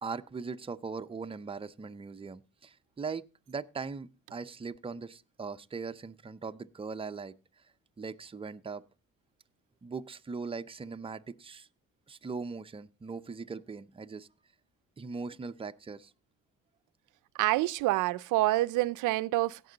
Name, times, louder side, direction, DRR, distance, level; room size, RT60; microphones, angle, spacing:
voice 1, 0.0-7.3 8.0-8.8 9.8-11.7 12.1-14.3 15.0-16.1, right 4 dB, 20° right, 0.5 m, -40 dB
voice 2, 17.4-19.6, right 17 dB, 85° right, 0.5 m, -27 dB
16.5 x 6.1 x 3.9 m
cardioid pair, 90°, 30 cm